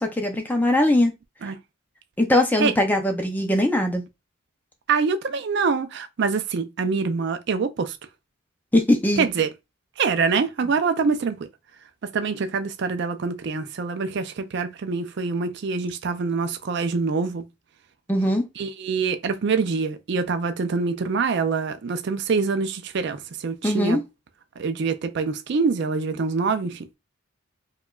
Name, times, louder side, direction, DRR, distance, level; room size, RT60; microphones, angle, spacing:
voice 1, 0.0-1.1 2.2-4.0 8.7-9.2 18.1-18.5 23.6-24.0, left 1 dB, 10° left, 0.4 m, -21 dB
voice 2, 4.9-8.0 9.2-9.5 10.0-11.4 12.1-17.5 18.6-24.0 24.6-26.9, right 5 dB, 55° right, 0.4 m, -25 dB
4.8 x 2.3 x 2.3 m
head